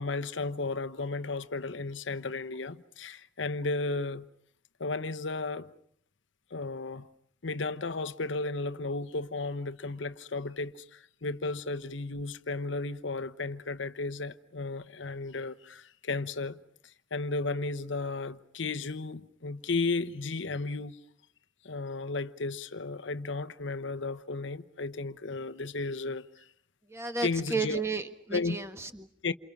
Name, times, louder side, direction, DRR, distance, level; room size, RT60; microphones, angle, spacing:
voice 1, 0.0-4.3 4.8-5.7 6.5-7.1 7.4-21.0 21.6-26.4 27.2-27.8 28.3-28.6 29.2-29.3, left 3 dB, 90° left, 1.0 m, -34 dB
voice 2, 26.9-29.1, right 4 dB, 15° right, 1.6 m, -33 dB
29.0 x 28.5 x 6.1 m
head